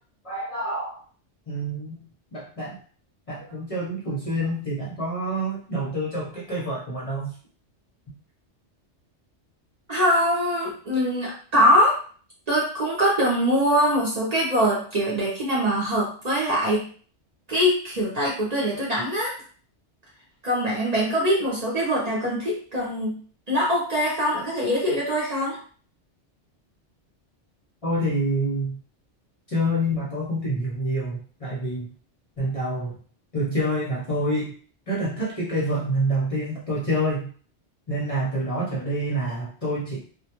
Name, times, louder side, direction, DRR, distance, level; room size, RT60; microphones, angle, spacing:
voice 1, 0.2-1.0 1.5-2.0 2.3-2.8 3.3-7.3 27.8-28.8 29.5-31.9 32.4-33.0 33.3-34.5 34.9-37.3 37.9-40.0, right 1 dB, 40° left, -6 dB, 0.6 m, -27 dB
voice 2, 9.9-12.0 12.5-16.8 17.5-19.3 20.4-23.1 23.5-25.6, equal, 45° right, -5 dB, 0.6 m, -23 dB
2.2 x 2.1 x 2.8 m, 0.43 s
omnidirectional pair, 1.2 m